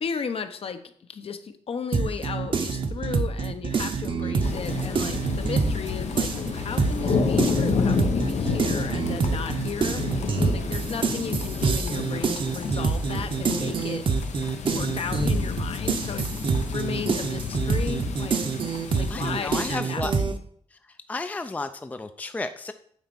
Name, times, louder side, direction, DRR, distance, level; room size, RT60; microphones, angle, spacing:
voice 1, 0.0-0.8 1.1-14.0 14.7-16.3 16.7-18.4 19.0-20.4, left 6 dB, 55° left, 9 dB, 0.8 m, -35 dB
sound 1, 1.9-5.9 6.2-20.3, right 5 dB, 50° right, 0.9 m, -26 dB
voice 2, 4.2-4.7 19.1-20.1 20.7-22.7, left 3 dB, 15° left, 9 dB, 0.4 m, -33 dB
sound 2, 4.4-19.8, left 6 dB, 85° left, 1.1 m, -30 dB
sound 3, 4.4-11.3, right 5 dB, 80° right, 1.2 m, -44 dB
9.3 x 4.2 x 6.9 m, 0.63 s
wide cardioid pair, 160°, 11 cm